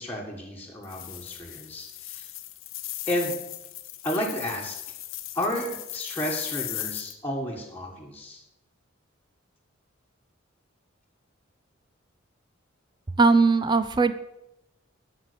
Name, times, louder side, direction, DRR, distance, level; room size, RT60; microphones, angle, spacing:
voice 1, 0.0-2.3 3.1-3.3 4.0-4.8 5.3-8.4, equal, 10° left, -3 dB, 1.6 m, -32 dB
sound 1, 0.8-7.1, left 15 dB, 85° left, 0.8 m, -37 dB
voice 2, 13.2-14.1, right 4 dB, 20° right, 12 dB, 0.5 m, -19 dB
13.0 x 5.8 x 6.7 m, 0.87 s
head